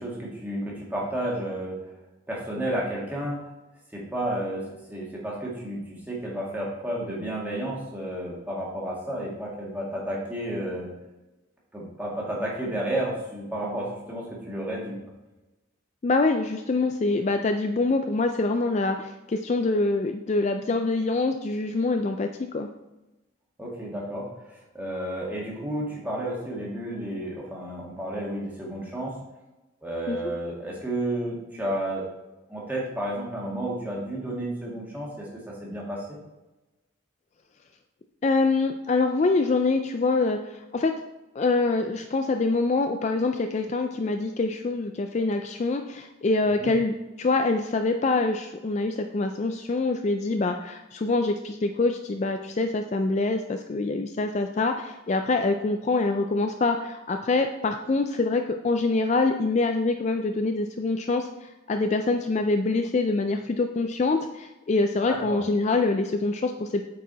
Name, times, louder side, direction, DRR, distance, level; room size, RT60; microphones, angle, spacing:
voice 1, 0.0-1.8 2.3-3.4 3.9-4.6 4.9-10.9 11.7-15.0 23.6-29.1 29.8-32.0 32.5-36.0 46.4-46.7 65.1-65.4, right 1 dB, 10° right, -4 dB, 1.7 m, -31 dB
voice 2, 16.0-22.7 30.1-30.2 38.2-40.9 41.4-66.8, left 3 dB, 35° left, 6 dB, 0.3 m, -25 dB
8.3 x 4.7 x 4.0 m, 1.0 s
head